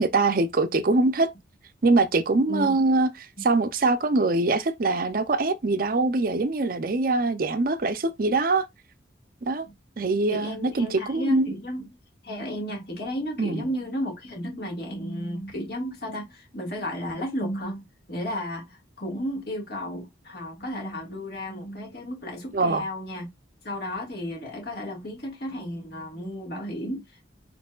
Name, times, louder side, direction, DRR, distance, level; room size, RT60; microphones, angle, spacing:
voice 1, 0.0-1.3 1.8-3.1 3.4-8.7 9.5-9.7 10.0-11.5 13.4-13.7 22.5-22.9, right 3 dB, 50° right, 0.5 m, -23 dB
voice 2, 10.3-11.9 12.2-23.3 23.6-27.2, equal, 55° left, 1.9 m, -33 dB
4.6 x 4.2 x 2.3 m
head